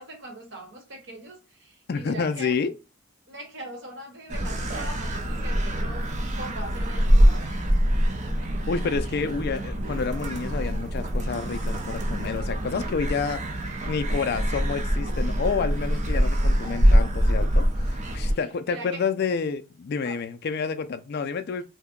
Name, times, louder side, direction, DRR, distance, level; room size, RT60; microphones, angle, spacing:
voice 1, 0.0-2.6 3.3-6.0 6.3-7.5 8.2-8.5 9.0-9.2 18.3-18.4 18.6-19.0 20.0-20.2, right 1 dB, 55° right, 1.0 m, -41 dB
voice 2, 1.9-2.7 8.7-21.6, left 5 dB, 45° left, 0.3 m, -29 dB
sound 1, 4.3-18.3, equal, 30° right, 0.5 m, -24 dB
2.7 x 2.1 x 3.7 m
head